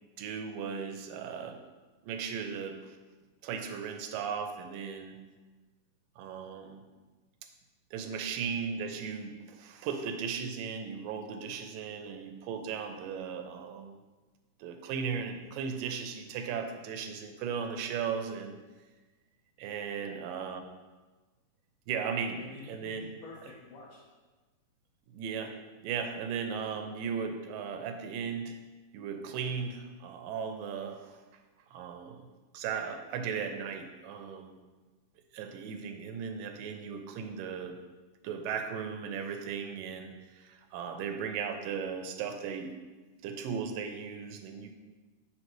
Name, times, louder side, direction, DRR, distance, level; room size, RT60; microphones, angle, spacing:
voice 1, 0.2-1.6 2.0-3.0 3.4-5.2 6.2-6.8 7.9-14.0 14.6-18.6 19.6-20.6 21.9-23.0 25.1-25.6 25.8-28.6 28.9-31.2 31.7-32.2 32.5-34.6 35.3-37.8 38.2-42.7 43.2-44.7, right 6 dB, 85° right, 6 dB, 2.3 m, -36 dB
voice 2, 19.9-20.4 22.3-24.0, left 3 dB, 80° left, -4 dB, 1.5 m, -49 dB
6.3 x 5.4 x 3.0 m, 1.3 s
omnidirectional pair, 3.8 m